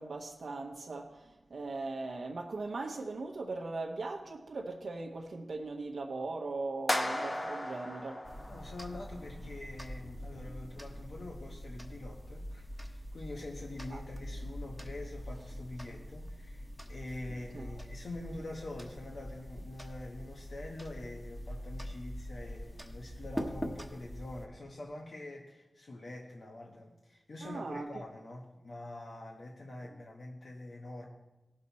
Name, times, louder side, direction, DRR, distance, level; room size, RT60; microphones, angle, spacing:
voice 1, 0.0-8.3 13.9-14.0 17.5-17.7 27.4-27.9, right 3 dB, 85° right, 0.9 m, -39 dB
sound 1, 6.9-9.1, left 1 dB, 30° left, 0.9 m, -35 dB
sound 2, 8.2-24.5, equal, 5° left, 1.1 m, -44 dB
voice 2, 8.5-31.1, left 2 dB, 75° left, 1.2 m, -45 dB
17.5 x 6.6 x 4.1 m
wide cardioid pair, 95°, 0 cm